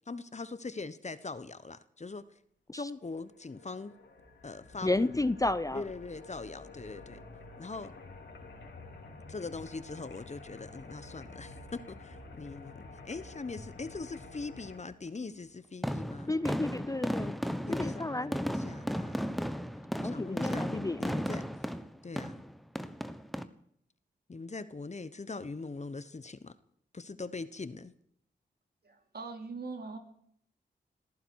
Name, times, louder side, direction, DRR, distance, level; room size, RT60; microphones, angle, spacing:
voice 1, 0.1-2.2 2.7-4.0 4.4-5.1 5.7-7.2 7.6-7.9 9.3-16.4 17.7-19.5 20.0-21.4 22.0-22.4 24.3-26.5 26.9-27.9, left 3 dB, 35° left, 14 dB, 1.0 m, -41 dB
sound 1, 3.2-14.8, left 3 dB, 75° left, 3.8 m, -49 dB
voice 2, 4.8-5.8 16.3-17.4 17.7-18.3 20.0-21.0, left 2 dB, 20° left, 16 dB, 0.6 m, -31 dB
sound 2, 15.8-23.4, equal, ahead, 1.2 m, -35 dB
voice 3, 28.8-30.0, right 4 dB, 55° right, 5 dB, 3.0 m, -41 dB
20.5 x 14.5 x 4.7 m, 0.69 s
cardioid pair, 45°, 19 cm